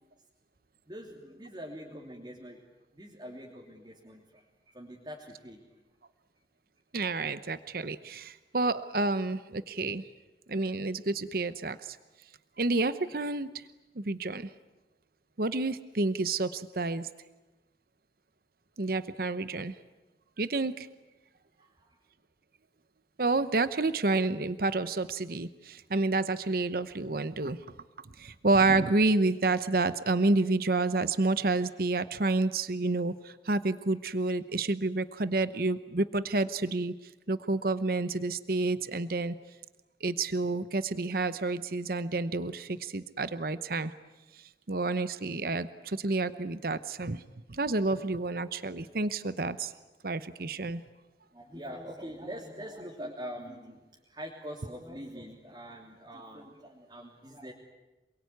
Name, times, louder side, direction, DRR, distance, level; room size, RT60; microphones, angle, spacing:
voice 1, 0.9-2.6 2.9-5.7 21.6-22.0 51.3-57.5, equal, 25° right, -2 dB, 3.2 m, -44 dB
voice 2, 6.9-10.0 10.5-12.0 12.6-13.6 14.0-14.5 15.4-17.1 18.8-19.7 20.4-20.9 23.2-27.6 28.2-36.9 37.3-39.3 40.0-43.9 44.7-47.2 47.5-49.7 50.0-50.8, right 3 dB, 55° right, 13 dB, 0.9 m, -29 dB
28.0 x 22.0 x 9.5 m, 1.1 s
head